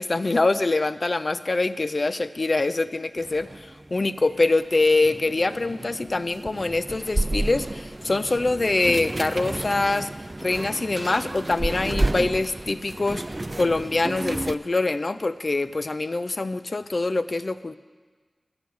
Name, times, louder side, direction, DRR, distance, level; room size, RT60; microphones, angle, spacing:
voice 1, 0.0-10.1 10.4-13.2 13.6-17.8, left 2 dB, 55° left, 13 dB, 0.4 m, -24 dB
sound 1, 3.2-14.5, right 2 dB, 35° right, 0.3 m, -31 dB
10.5 x 6.9 x 7.6 m, 1.4 s
cardioid pair, 45°, 0 cm